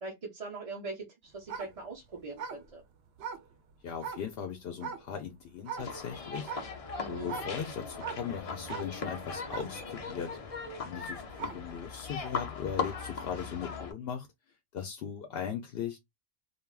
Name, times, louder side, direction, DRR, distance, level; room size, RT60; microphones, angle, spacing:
voice 1, 0.0-2.8 6.9-7.3, right 3 dB, 40° right, 0.7 m, -41 dB
sound 1, 1.4-4.3 4.8-5.3 5.6-6.0 6.4-11.8 12.2-12.3, right 6 dB, 85° right, 0.8 m, -41 dB
voice 2, 3.8-6.5 7.0-10.4 10.8-14.3 14.7-16.0, left 7 dB, 75° left, 0.8 m, -38 dB
sound 2, 5.8-13.9, left 5 dB, 45° left, 0.6 m, -39 dB
3.3 x 2.4 x 2.3 m
omnidirectional pair, 1.0 m